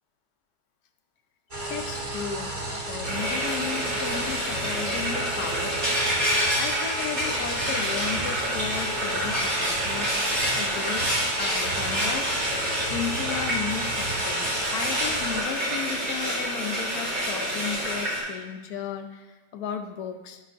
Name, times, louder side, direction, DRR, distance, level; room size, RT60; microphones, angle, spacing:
sound 1, 1.5-15.4, right 2 dB, 30° right, 1.3 m, -33 dB
voice 1, 1.7-2.5 2.9-6.0 6.6-10.1 10.6-11.1 11.4-12.3 12.9-20.4, left 7 dB, 70° left, 6 dB, 1.1 m, -34 dB
Frying (food), 3.0-18.2, equal, 75° right, 3.4 m, -28 dB
12.0 x 5.6 x 2.5 m, 1.2 s
omnidirectional pair, 1.8 m